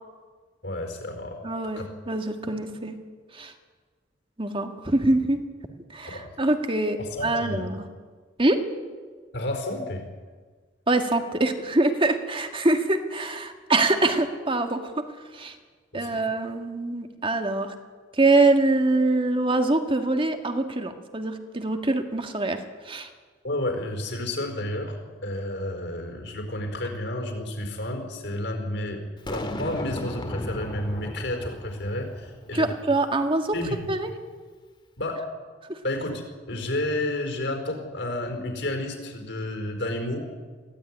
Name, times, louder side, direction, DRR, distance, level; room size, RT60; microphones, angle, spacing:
voice 1, 0.6-1.4 1.8-1.9 6.0-6.3 7.0-7.7 9.3-10.0 15.9-16.2 23.4-29.0 29.3-32.7 33.5-33.8 35.0-35.3 35.8-40.2, left 1 dB, 65° left, 5 dB, 4.6 m, -31 dB
voice 2, 1.4-2.9 3.3-3.5 4.4-5.4 5.9-7.9 8.4-8.6 10.9-15.5 15.9-17.7 18.2-23.1 32.5-33.6 33.9-34.1 35.7-35.8, right 2 dB, 30° right, 6 dB, 1.9 m, -24 dB
Boom, 29.3-32.6, left 1 dB, 25° left, 1.8 m, -34 dB
22.5 x 16.0 x 9.8 m, 1.5 s
head